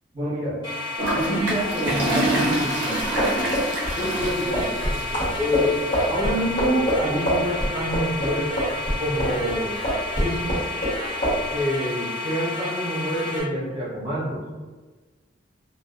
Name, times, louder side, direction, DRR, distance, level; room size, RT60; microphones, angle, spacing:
voice 1, 0.1-0.6 1.1-3.4 4.0-4.7 5.1-5.8 6.1-8.5 9.0-9.8 10.1-10.5 11.5-14.5, equal, 30° right, -8 dB, 0.9 m, -27 dB
sound 1, 0.6-13.4, left 2 dB, 25° left, 0.7 m, -31 dB
Toilet flush, 1.0-6.0, right 1 dB, 70° right, 0.5 m, -27 dB
sound 2, 3.0-9.6 9.8-11.0 11.2-11.4, equal, 40° left, 0.9 m, -24 dB
2.3 x 2.2 x 2.3 m, 1.3 s
head